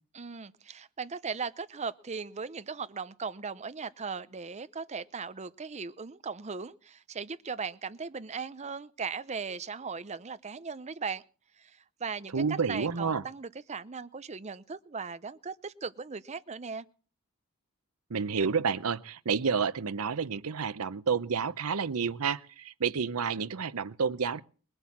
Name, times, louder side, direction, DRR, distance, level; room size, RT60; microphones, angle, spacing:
voice 1, 0.1-11.2 11.6-16.9, right 5 dB, 30° right, 0.6 m, -38 dB
voice 2, 12.3-13.2 18.1-24.4, right 5 dB, 85° right, 0.7 m, -30 dB
20.5 x 7.9 x 7.3 m
head